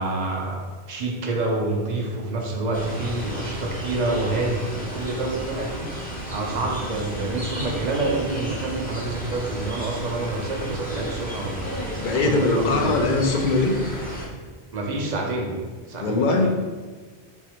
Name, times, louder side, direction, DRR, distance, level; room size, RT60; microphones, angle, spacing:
voice 1, 0.0-6.0 6.3-11.7 12.1-12.9 14.7-15.6 15.9-16.5, right 2 dB, 50° right, 0 dB, 0.6 m, -27 dB
sound 1, 2.7-14.3, right 1 dB, 10° left, 0.6 m, -33 dB
voice 2, 12.0-13.8 16.0-16.5, left 3 dB, 55° left, 3 dB, 0.6 m, -21 dB
5.4 x 2.4 x 3.0 m, 1.4 s
omnidirectional pair, 1.1 m